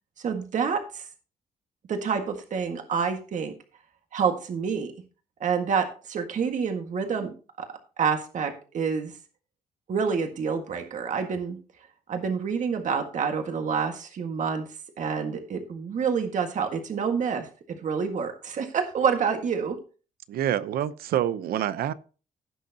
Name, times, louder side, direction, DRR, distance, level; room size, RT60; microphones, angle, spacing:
voice 1, 0.2-1.1 1.9-3.5 4.1-4.9 5.4-7.3 7.6-7.7 8.0-9.1 9.9-11.6 12.1-14.7 15.0-19.8, right 6 dB, 55° right, 1.7 m, -28 dB
voice 2, 20.3-21.9, right 11 dB, 85° right, 0.7 m, -27 dB
16.5 x 6.6 x 2.8 m
cardioid pair, 115°, 15 cm